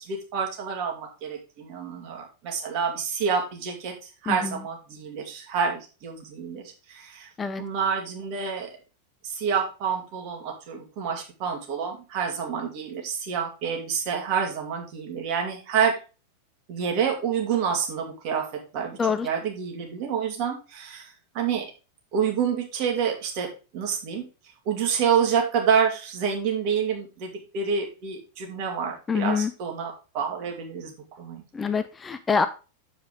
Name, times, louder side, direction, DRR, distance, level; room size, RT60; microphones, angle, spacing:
voice 1, 0.1-7.3 7.6-8.7 9.2-15.9 16.7-18.4 18.7-21.6 22.1-23.5 23.7-24.3 24.7-31.4, right 7 dB, 45° right, 2.5 m, -28 dB
voice 2, 29.1-29.5 31.5-32.5, left 5 dB, 15° left, 0.5 m, -25 dB
7.7 x 5.0 x 4.9 m
figure-of-eight pair, 90°, 0 cm